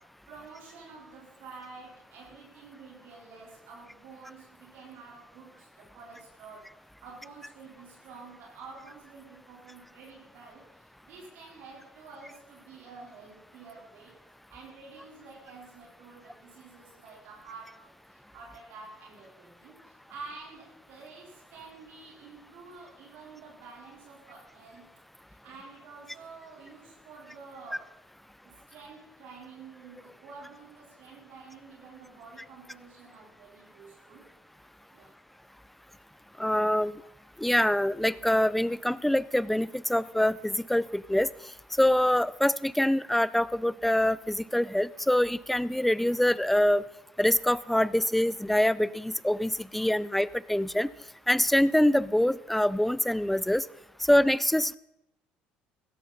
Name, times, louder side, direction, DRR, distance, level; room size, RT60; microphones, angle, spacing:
voice 1, 0.0-14.2 14.5-24.9 25.3-28.0 28.4-34.3 34.9-35.1, right 4 dB, 70° right, -2 dB, 3.9 m, -49 dB
voice 2, 36.4-36.9 37.4-41.3 41.8-46.8 47.2-50.9 51.3-53.6 54.1-54.7, left 1 dB, 5° left, 19 dB, 0.5 m, -25 dB
16.0 x 13.0 x 4.1 m, 0.81 s
supercardioid pair, 80°, 4 cm